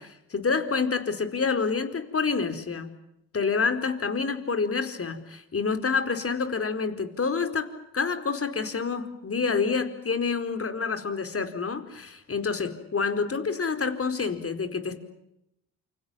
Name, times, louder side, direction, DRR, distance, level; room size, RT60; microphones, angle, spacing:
voice 1, 0.0-2.9 3.3-7.7 7.9-15.0, left 5 dB, 40° left, 9 dB, 4.6 m, -28 dB
28.5 x 26.0 x 7.5 m, 0.83 s
hypercardioid pair, 55°, 37 cm